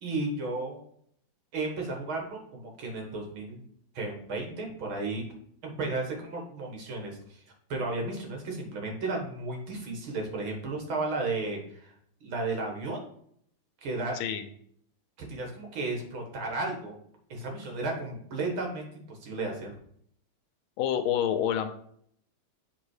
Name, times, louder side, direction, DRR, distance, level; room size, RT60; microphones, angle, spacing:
voice 1, 0.0-0.8 1.5-3.6 3.9-5.2 5.6-7.4 7.7-11.9 12.2-13.0 13.8-14.2 15.3-17.0 17.3-19.8, right 3 dB, 85° right, 1 dB, 2.4 m, -33 dB
voice 2, 14.1-14.5 20.8-21.7, left 9 dB, 85° left, 9 dB, 1.5 m, -27 dB
7.5 x 3.7 x 4.8 m, 0.65 s
omnidirectional pair, 2.2 m